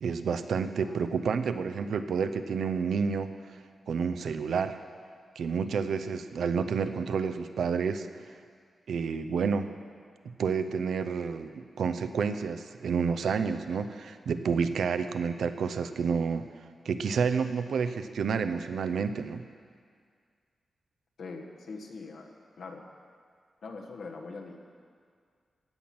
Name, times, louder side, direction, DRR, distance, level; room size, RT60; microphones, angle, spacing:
voice 1, 0.0-3.3 3.9-4.8 5.4-8.1 8.9-9.7 10.2-11.5 11.8-16.5 16.9-19.4, right 6 dB, 80° right, 9 dB, 0.6 m, -29 dB
voice 2, 21.2-22.3 22.6-22.8 23.6-24.6, left 4 dB, 75° left, 1 dB, 1.5 m, -42 dB
16.0 x 6.0 x 8.8 m, 2.1 s
wide cardioid pair, 140°, 0 cm